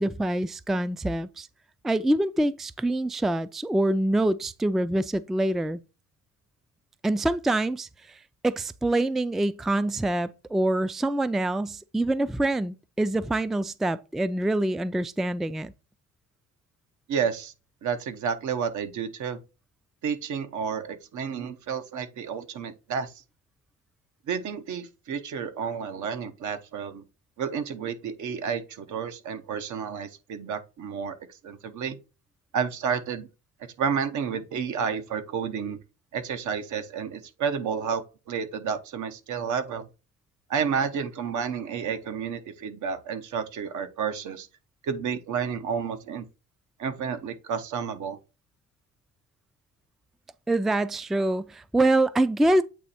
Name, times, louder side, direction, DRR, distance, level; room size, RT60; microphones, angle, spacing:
voice 1, 0.0-1.5 1.8-5.8 7.0-8.2 8.4-15.7 50.5-52.6, right 1 dB, ahead, 0.3 m, -25 dB
voice 2, 17.1-17.5 17.8-19.4 20.0-23.1 24.3-27.0 27.4-31.2 31.4-32.0 32.5-33.3 33.8-35.8 36.1-39.9 40.5-44.5 44.8-46.2 46.8-48.2, right 6 dB, 75° right, 1.0 m, -30 dB
8.4 x 3.0 x 4.2 m
cardioid pair, 90°, 30 cm